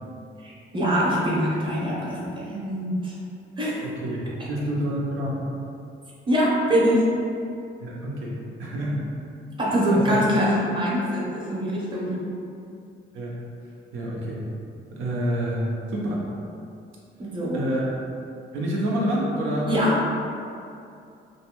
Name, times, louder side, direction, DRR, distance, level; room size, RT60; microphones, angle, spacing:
voice 1, 0.4-3.1 3.6-3.8 6.3-7.1 9.6-12.4 17.2-17.6 19.7-20.1, equal, 25° right, -6 dB, 0.8 m, -23 dB
voice 2, 3.8-4.2 4.5-5.4 7.8-9.0 9.9-10.2 13.1-13.3 13.9-14.4 14.9-16.2 17.5-18.0 18.5-19.7, equal, 85° right, -4 dB, 0.6 m, -28 dB
2.6 x 2.2 x 2.9 m, 2.5 s
cardioid pair, 90°, 20 cm